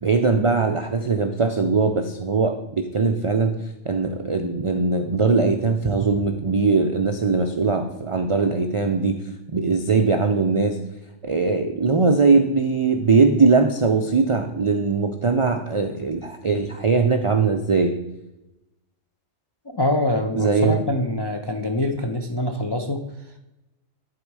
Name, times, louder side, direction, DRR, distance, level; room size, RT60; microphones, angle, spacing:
voice 1, 0.0-3.5 3.8-9.2 9.5-10.8 11.2-17.9 20.3-20.8, right 4 dB, 50° right, 6 dB, 0.3 m, -20 dB
voice 2, 19.7-23.4, left 1 dB, 35° left, 3 dB, 0.4 m, -25 dB
10.5 x 4.1 x 4.7 m, 0.95 s
omnidirectional pair, 1.3 m